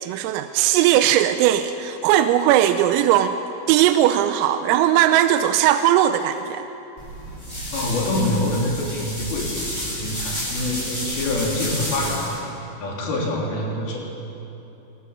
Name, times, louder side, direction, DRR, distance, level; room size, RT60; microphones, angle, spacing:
voice 1, 0.0-3.3 3.7-6.7, right 12 dB, 90° right, 8 dB, 3.4 m, -18 dB
sound 1, 7.0-12.4, equal, 10° left, 6.6 m, -30 dB
voice 2, 7.7-12.4 12.8-14.0, left 1 dB, 50° left, -2 dB, 4.6 m, -25 dB
22.5 x 19.5 x 7.2 m, 3.0 s
omnidirectional pair, 5.9 m